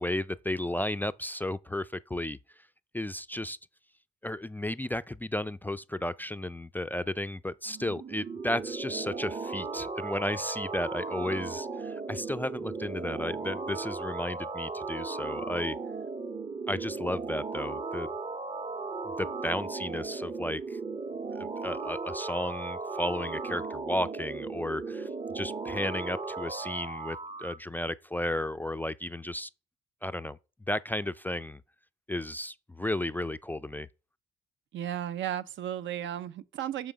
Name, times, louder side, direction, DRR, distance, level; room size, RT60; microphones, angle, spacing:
voice 1, 0.0-2.4 2.9-3.6 4.2-15.8 16.7-18.1 19.2-20.8 21.4-25.1 25.3-29.5 30.0-30.4 30.7-31.6 32.1-33.9, left 1 dB, 10° left, 0.3 m, -33 dB
sound 1, 7.7-27.6, right 4 dB, 30° right, 0.7 m, -36 dB
voice 2, 34.7-36.9, right 11 dB, 70° right, 0.6 m, -34 dB
6.3 x 5.6 x 5.0 m
cardioid pair, 90°, 20 cm